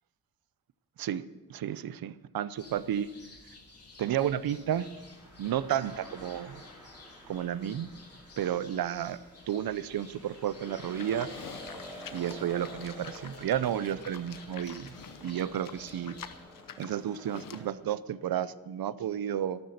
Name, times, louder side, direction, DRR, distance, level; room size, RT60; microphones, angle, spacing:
voice 1, 1.5-3.1 4.0-4.9 5.4-6.6 7.3-7.9 8.4-9.2 9.5-11.3 12.1-15.0 15.2-16.2 16.8-19.6, right 10 dB, 70° right, 17 dB, 0.6 m, -32 dB
sound 1, 2.6-16.4, left 3 dB, 40° left, 3.2 m, -54 dB
sound 2, 4.3-17.7, left 1 dB, 5° right, 5.9 m, -50 dB
Livestock farm animals working animals, 11.0-17.7, left 8 dB, 60° left, 0.9 m, -48 dB
13.0 x 12.5 x 6.5 m, 1.2 s
wide cardioid pair, 155°, 38 cm